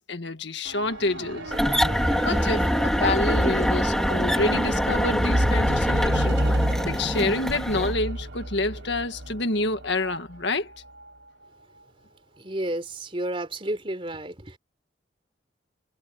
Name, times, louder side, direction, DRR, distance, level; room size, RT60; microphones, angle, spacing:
voice 1, 0.0-1.5 2.2-6.4 6.9-10.7, left 2 dB, 65° left, 1.8 m, -28 dB
sound 1, 0.7-10.2 11.0-11.1, right 1 dB, 80° right, 3.6 m, -30 dB
sound 2, 1.5-7.9, equal, 5° left, 2.5 m, -24 dB
voice 2, 12.4-14.6, right 1 dB, 30° right, 3.5 m, -31 dB
head